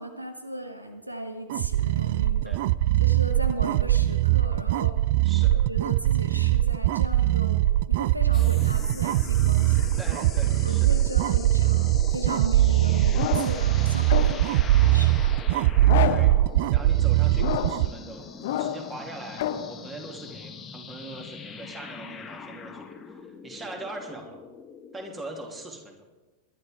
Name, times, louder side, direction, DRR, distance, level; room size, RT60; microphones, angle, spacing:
voice 1, 0.0-2.6 3.0-5.0 5.3-7.6 7.9-9.9 10.5-15.4, right 1 dB, 85° right, 7 dB, 1.1 m, -36 dB
sound 1, 1.5-17.9, right 15 dB, 50° right, 0.3 m, -22 dB
voice 2, 5.2-5.6 10.0-11.0 16.1-16.4 16.7-24.4 24.9-26.0, right 2 dB, 15° right, 2 dB, 2.7 m, -41 dB
sound 2, 8.3-25.1, left 5 dB, 20° left, 1.3 m, -42 dB
sound 3, 13.1-13.7 14.1-14.6 15.8-16.4 17.4-17.9 18.4-18.9 19.4-19.7, left 11 dB, 55° left, 0.9 m, -29 dB
21.5 x 11.5 x 3.7 m, 1.2 s
figure-of-eight pair, 90°, 0 cm